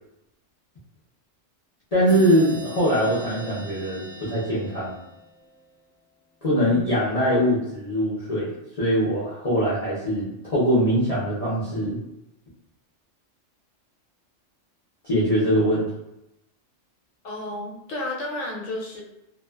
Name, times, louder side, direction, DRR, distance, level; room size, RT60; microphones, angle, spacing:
voice 1, 1.9-5.0 6.4-8.5 8.8-12.0 15.0-15.9, equal, 40° left, -10 dB, 0.6 m, -22 dB
sound 1, 2.1-5.6, left 1 dB, 30° right, 0.4 m, -40 dB
voice 2, 17.2-19.0, left 1 dB, 80° left, -2 dB, 1.0 m, -32 dB
2.4 x 2.3 x 2.2 m, 0.87 s
omnidirectional pair, 1.3 m